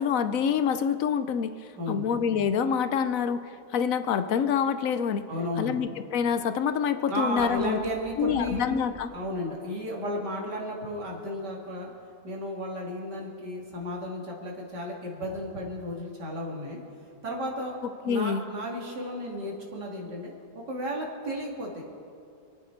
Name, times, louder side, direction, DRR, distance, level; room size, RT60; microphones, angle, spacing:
voice 1, 0.0-1.5 1.9-3.4 3.7-5.2 5.6-7.8 8.2-9.1 17.8-18.5, left 7 dB, 60° left, 11 dB, 1.0 m, -26 dB
voice 2, 5.3-5.8 7.1-8.6 9.1-11.9 12.2-16.8 17.2-17.8 18.1-20.3 20.7-21.8, equal, 70° right, -2 dB, 3.0 m, -33 dB
sound 1, 7.4-9.0, right 2 dB, 10° right, 1.0 m, -46 dB
28.0 x 9.5 x 4.6 m, 2.6 s
omnidirectional pair, 1.9 m